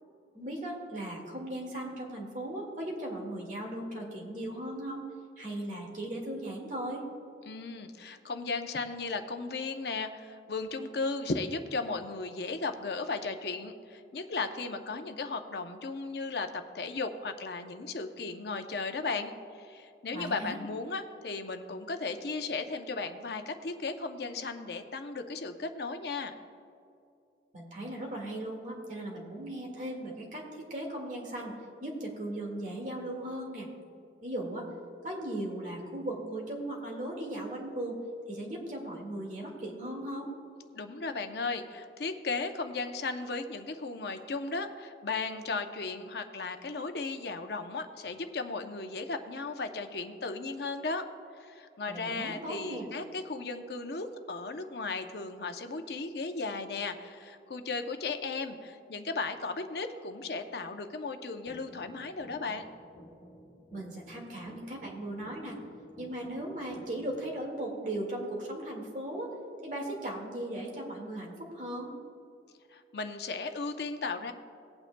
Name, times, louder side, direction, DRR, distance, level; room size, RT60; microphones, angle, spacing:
voice 1, 0.3-5.1 5.4-7.0 20.1-20.6 27.5-31.5 31.8-33.7 34.2-34.7 35.0-38.0 38.3-40.3 51.9-52.9 63.7-65.6 66.0-69.3 69.6-71.9, right 1 dB, 45° right, 0 dB, 1.9 m, -37 dB
voice 2, 7.4-26.3 40.7-51.0 51.4-62.6 72.7-74.3, left 3 dB, 65° left, 7 dB, 0.7 m, -36 dB
sound 1, 61.5-67.5, equal, 35° left, 2.4 m, -54 dB
18.5 x 8.8 x 2.2 m, 2.5 s
head